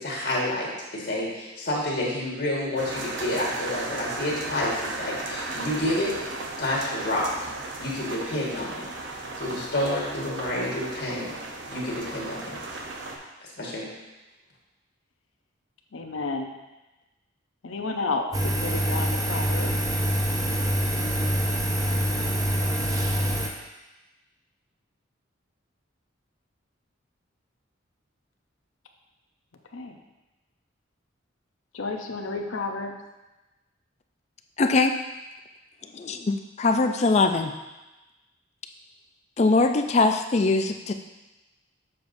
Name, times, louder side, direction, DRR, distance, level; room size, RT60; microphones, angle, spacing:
voice 1, 0.0-6.2 6.6-7.5 7.8-8.9 9.4-11.3 11.7-12.6 13.6-13.9, left 1 dB, 55° left, -4 dB, 1.5 m, -29 dB
sound 1, 2.8-13.2, right 2 dB, 65° right, 0.8 m, -35 dB
voice 2, 15.9-16.5 17.6-19.7 29.7-30.0 31.7-33.0, left 3 dB, 85° left, 4 dB, 0.7 m, -31 dB
Engine, 18.3-23.5, equal, 15° right, 0.6 m, -25 dB
voice 3, 34.6-34.9 35.9-37.5 39.4-40.9, left 3 dB, 35° left, 6 dB, 0.4 m, -22 dB
6.8 x 6.8 x 2.6 m, 1.1 s
head